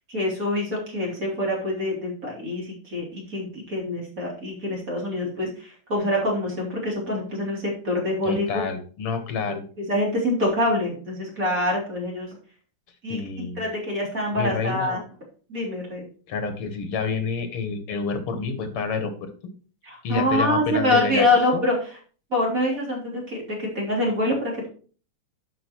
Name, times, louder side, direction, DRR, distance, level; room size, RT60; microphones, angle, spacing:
voice 1, 0.1-8.6 9.9-12.3 13.0-15.0 15.5-16.0 19.8-21.8 22.3-24.7, left 1 dB, 40° right, -3 dB, 3.8 m, -25 dB
voice 2, 8.2-9.6 13.1-13.6 14.4-15.0 16.3-19.3 20.0-21.3 21.5-21.6, left 5 dB, 90° left, 8 dB, 2.4 m, -28 dB
11.5 x 5.9 x 4.6 m, 0.41 s
omnidirectional pair, 2.4 m